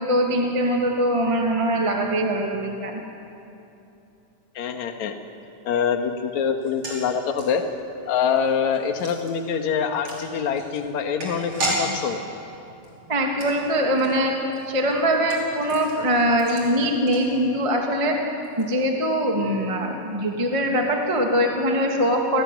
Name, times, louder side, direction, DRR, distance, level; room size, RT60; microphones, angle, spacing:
voice 1, 0.0-3.0 13.1-14.3 14.7-18.2 18.6-22.4, equal, 10° right, 0 dB, 2.1 m, -22 dB
voice 2, 4.6-5.2 5.6-7.6 8.1-12.2, left 7 dB, 60° left, 5 dB, 2.7 m, -25 dB
sound 1, 6.6-17.8 18.1-18.2 18.4-18.6, right 1 dB, 45° right, 6.6 m, -35 dB
29.5 x 19.5 x 9.5 m, 2.8 s
omnidirectional pair, 3.8 m